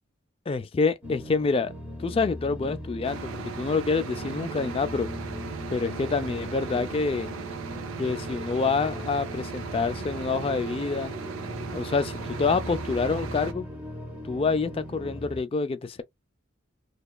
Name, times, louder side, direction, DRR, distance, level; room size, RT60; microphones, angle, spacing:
voice 1, 0.5-1.7 2.0-5.1 5.7-7.3 8.0-11.1 11.7-13.7 14.2-16.0, left 4 dB, 30° left, 0.3 m, -27 dB
sound 1, 1.0-15.4, left 1 dB, 5° right, 0.7 m, -39 dB
sound 2, 3.0-13.5, right 6 dB, 90° right, 0.5 m, -38 dB
2.9 x 2.3 x 2.2 m
head